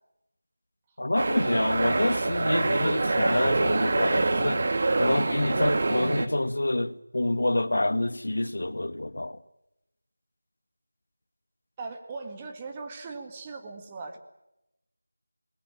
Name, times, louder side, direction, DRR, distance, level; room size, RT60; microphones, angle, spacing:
voice 1, 1.0-4.7 5.0-9.4, left 1 dB, 55° left, 1.8 m, -27 dB
sound 1, 1.2-6.3, right 2 dB, 35° right, 2.2 m, -25 dB
voice 2, 11.8-14.2, right 3 dB, 15° right, 1.9 m, -39 dB
28.0 x 21.0 x 7.7 m
figure-of-eight pair, 170°, 0 cm